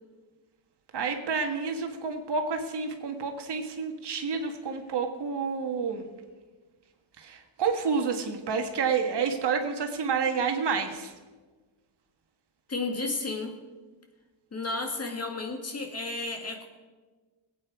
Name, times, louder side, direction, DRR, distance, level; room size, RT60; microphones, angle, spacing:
voice 1, 0.9-6.0 7.2-11.1, right 5 dB, 55° right, 5 dB, 1.6 m, -29 dB
voice 2, 12.7-13.6 14.5-16.7, left 3 dB, 30° left, 3 dB, 1.9 m, -32 dB
21.5 x 9.0 x 4.8 m, 1.3 s
cardioid pair, 135°, 49 cm